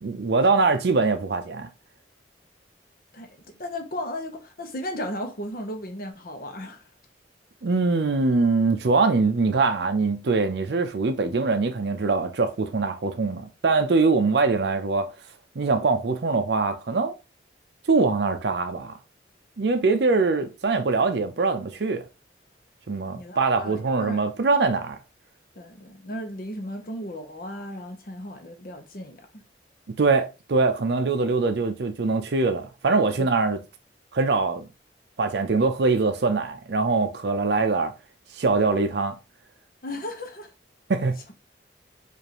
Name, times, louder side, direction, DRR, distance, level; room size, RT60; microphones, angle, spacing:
voice 1, 0.0-1.7 7.6-15.1 15.6-17.1 17.9-18.9 19.6-22.0 22.9-25.0 30.0-33.6 34.1-34.7 35.2-37.9 38.3-39.1 40.9-41.2, right 3 dB, 65° right, 0.5 m, -23 dB
voice 2, 3.1-6.8 22.9-24.2 25.6-29.4 33.2-33.3 39.8-40.5, left 1 dB, 50° left, 0.8 m, -35 dB
4.9 x 2.5 x 2.9 m
head